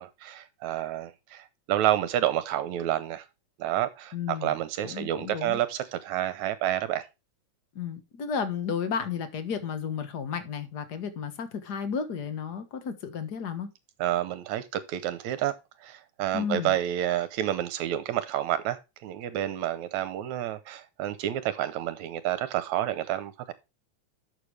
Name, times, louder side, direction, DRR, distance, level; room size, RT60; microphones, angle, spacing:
voice 1, 0.0-3.2 3.6-4.1 4.4-7.0 14.0-15.5 15.8-23.5, right 12 dB, 75° right, 2.1 m, -29 dB
voice 2, 4.1-4.5 4.8-5.6 7.7-13.7 16.3-16.7, left 6 dB, 45° left, 1.5 m, -33 dB
11.5 x 6.9 x 3.3 m
omnidirectional pair, 3.4 m